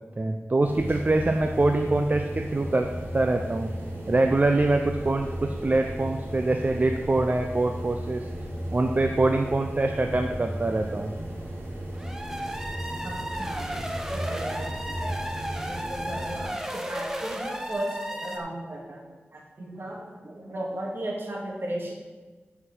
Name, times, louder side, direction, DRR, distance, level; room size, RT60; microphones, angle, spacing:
voice 1, 0.2-2.9 3.1-3.7 4.1-8.3 8.7-11.1, right 2 dB, 40° right, 4 dB, 0.6 m, -24 dB
sound 1, 0.6-16.4, equal, 75° right, 3.3 m, -35 dB
sound 2, 11.9-18.4, equal, 10° right, 1.0 m, -34 dB
voice 2, 13.0-13.7 14.1-15.2 15.7-21.9, right 1 dB, 60° right, -2 dB, 2.3 m, -36 dB
7.8 x 5.8 x 6.2 m, 1.3 s
wide cardioid pair, 75°, 4 cm